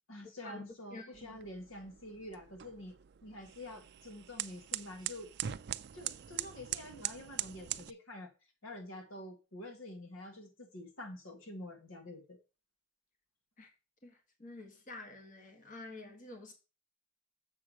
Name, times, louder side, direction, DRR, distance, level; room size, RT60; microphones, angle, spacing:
voice 1, 0.1-3.0 3.2-5.3 5.9-8.3 8.6-12.4, left 1 dB, 75° left, 1.6 m, -47 dB
voice 2, 0.9-1.4 13.6-13.7 14.0-14.1 14.4-16.5, left 2 dB, 40° left, 1.6 m, -48 dB
sound 1, 1.1-7.9, right 12 dB, 55° right, 0.4 m, -42 dB
7.1 x 4.7 x 6.3 m
head